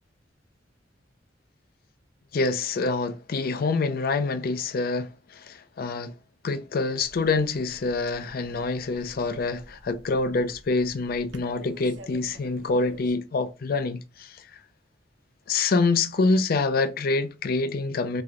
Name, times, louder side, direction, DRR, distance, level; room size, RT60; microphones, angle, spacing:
voice 1, 2.3-6.1 6.4-14.5 15.5-18.2, left 3 dB, 55° left, 0.4 m, -26 dB
sound 1, 7.0-13.2, right 1 dB, 75° right, 0.9 m, -49 dB
3.4 x 3.3 x 3.6 m
head